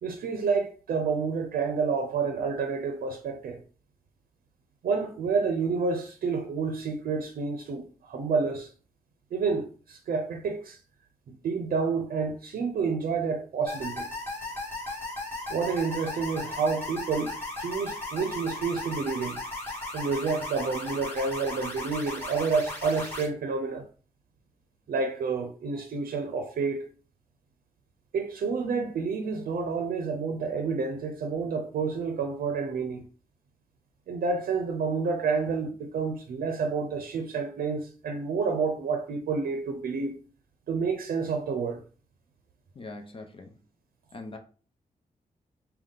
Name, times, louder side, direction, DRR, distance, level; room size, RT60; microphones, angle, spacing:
voice 1, 0.0-3.6 4.8-8.7 9.3-10.8 11.3-14.1 15.5-19.4 19.9-23.9 24.9-26.8 28.1-33.0 34.1-40.2 40.7-41.8, right 5 dB, 85° right, 0.6 m, -29 dB
sound 1, 13.7-23.3, left 2 dB, 15° left, 1.9 m, -36 dB
voice 2, 42.7-43.6 44.1-44.4, left 2 dB, 40° left, 0.7 m, -42 dB
5.3 x 2.3 x 3.8 m
wide cardioid pair, 120°, 15 cm